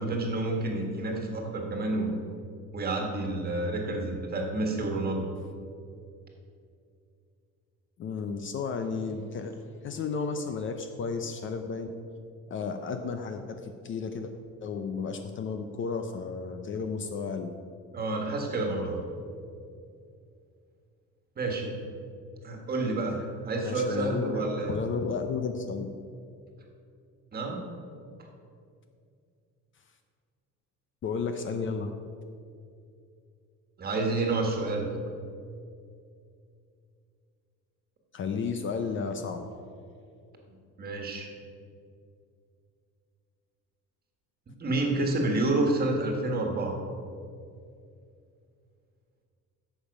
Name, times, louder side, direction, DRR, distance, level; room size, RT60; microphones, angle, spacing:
voice 1, 0.0-2.1 2.7-5.3 17.9-19.0 21.4-21.8 22.4-24.8 27.3-27.6 33.8-34.9 40.8-41.3 44.6-46.8, right 2 dB, 30° right, 2 dB, 1.6 m, -29 dB
voice 2, 8.0-11.9 12.5-14.3 14.6-17.5 23.6-25.9 31.0-31.9 38.1-39.5, left 5 dB, 40° left, 7 dB, 0.6 m, -33 dB
11.5 x 7.4 x 5.3 m, 2.4 s
cardioid pair, 160°, 33 cm